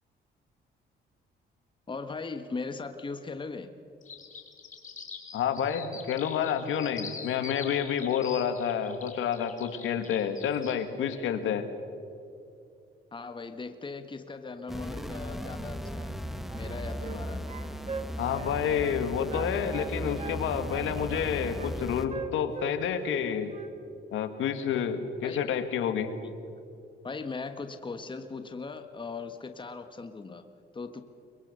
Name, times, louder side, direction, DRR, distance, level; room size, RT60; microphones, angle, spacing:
voice 1, 1.9-3.7 13.1-16.2 16.5-17.4 25.2-25.4 26.2-26.3 27.0-30.4 30.7-31.0, left 4 dB, 25° left, 8 dB, 1.3 m, -39 dB
sound 1, 4.0-10.7, left 5 dB, 40° left, 2.9 m, -44 dB
voice 2, 5.3-11.7 18.2-23.5 24.1-26.2, left 8 dB, 85° left, 8 dB, 1.8 m, -29 dB
sound 2, 14.7-22.1, equal, ahead, 1.3 m, -37 dB
sound 3, 16.5-17.2 17.5-19.0 19.3-20.4 20.7-21.7 22.1-23.2 23.5-23.7, right 5 dB, 30° right, 1.4 m, -41 dB
23.5 x 22.0 x 6.7 m, 2.6 s
cardioid pair, 90°, 20 cm